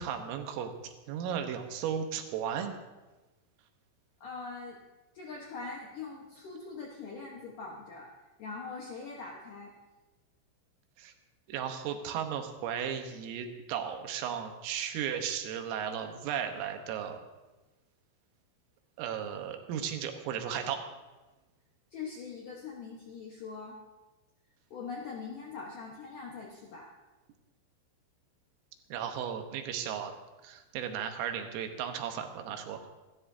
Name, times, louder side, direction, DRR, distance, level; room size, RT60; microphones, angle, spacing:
voice 1, 0.0-2.7 11.0-11.1 11.5-17.2 19.0-20.8 28.9-30.2 30.4-32.9, right 8 dB, 80° right, 5 dB, 3.8 m, -35 dB
voice 2, 4.2-4.8 5.1-8.1 8.4-9.7 21.9-23.8 24.7-26.9, left 4 dB, 75° left, -2 dB, 2.0 m, -42 dB
26.5 x 13.0 x 2.8 m, 1.2 s
omnidirectional pair, 5.9 m